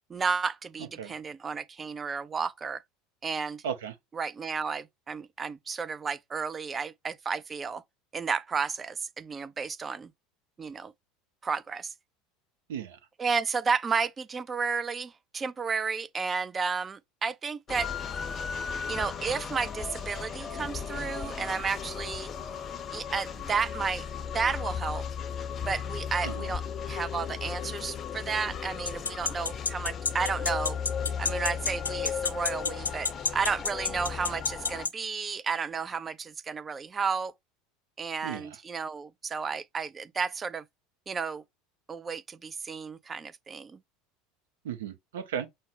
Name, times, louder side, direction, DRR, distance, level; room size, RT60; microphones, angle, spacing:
voice 1, 0.1-2.8 3.2-3.6 4.1-7.8 8.1-10.1 10.6-10.9 11.4-11.9 13.2-17.9 18.9-22.3 22.9-24.0 24.3-25.0 25.6-30.8 31.2-37.3 38.0-40.6 41.1-41.4 41.9-43.8, right 5 dB, 25° right, 0.4 m, -32 dB
sound 1, 17.7-34.9, left 7 dB, 35° left, 0.6 m, -36 dB
sound 2, 28.8-34.9, left 5 dB, 85° left, 0.4 m, -28 dB
voice 2, 44.6-45.5, right 8 dB, 70° right, 0.7 m, -35 dB
5.5 x 2.1 x 3.2 m
figure-of-eight pair, 75°, 0 cm